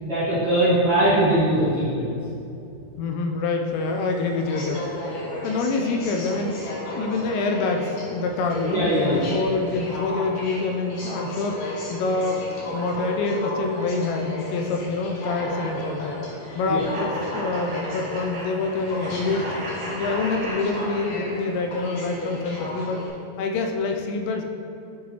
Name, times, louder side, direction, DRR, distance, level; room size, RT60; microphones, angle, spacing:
voice 1, 0.0-2.1 4.6-4.8 8.6-9.2 16.7-16.8, right 1 dB, 80° right, -13 dB, 1.0 m, -21 dB
voice 2, 3.0-5.2 5.4-12.4 12.7-16.2 16.6-19.5 20.0-23.1 23.4-24.5, left 3 dB, 85° left, 3 dB, 2.7 m, -26 dB
Aircraft, 3.7-23.1, left 1 dB, 65° left, 2.2 m, -34 dB
sound 1, 16.9-21.5, right 1 dB, 60° right, 1.4 m, -35 dB
11.0 x 4.0 x 2.9 m, 2.6 s
omnidirectional pair, 5.0 m